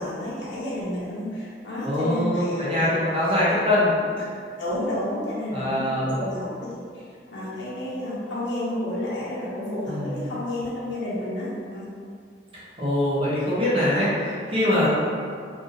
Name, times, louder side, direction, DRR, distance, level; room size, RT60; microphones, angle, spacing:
voice 1, 0.0-2.9 4.6-11.9, left 1 dB, 85° left, -9 dB, 0.9 m, -31 dB
voice 2, 1.8-4.3 5.5-6.2 9.9-10.2 12.8-14.9, left 1 dB, 30° right, -9 dB, 0.7 m, -23 dB
2.6 x 2.6 x 2.6 m, 2.2 s
head